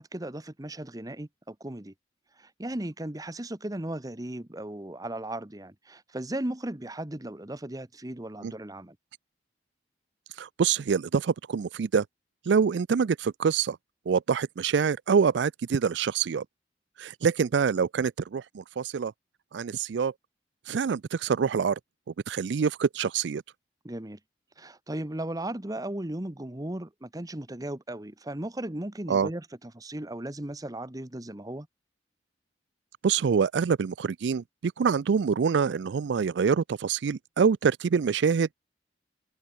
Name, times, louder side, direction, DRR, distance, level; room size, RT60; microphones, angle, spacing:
voice 1, 0.0-1.9 2.4-9.0 23.8-24.2 24.6-31.7, right 1 dB, 20° right, 1.1 m, -36 dB
voice 2, 10.4-12.1 12.5-13.8 14.1-16.4 17.0-19.1 19.5-20.1 20.7-21.8 22.3-23.4 29.1-29.3 33.0-38.5, right 6 dB, 75° right, 0.4 m, -25 dB
head